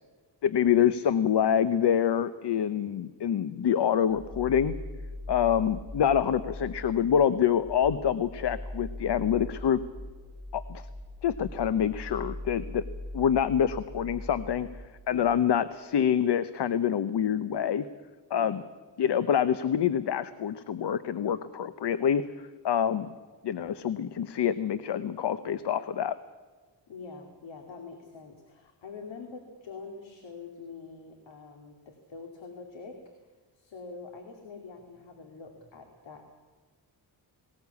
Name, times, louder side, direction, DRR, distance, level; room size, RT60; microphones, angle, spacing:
voice 1, 0.4-4.7 5.3-9.8 10.5-10.8 11.2-12.8 13.1-14.7 15.1-17.8 18.3-18.6 19.0-22.2 22.6-23.1 23.4-26.1, left 9 dB, 65° left, 14 dB, 0.9 m, -26 dB
sound 1, 4.1-15.2, left 1 dB, 30° left, 3.8 m, -41 dB
voice 2, 18.3-18.6 26.9-33.0 33.5-36.3, left 4 dB, 85° left, 4 dB, 2.7 m, -45 dB
19.5 x 18.5 x 8.3 m, 1.4 s
wide cardioid pair, 130°, 44 cm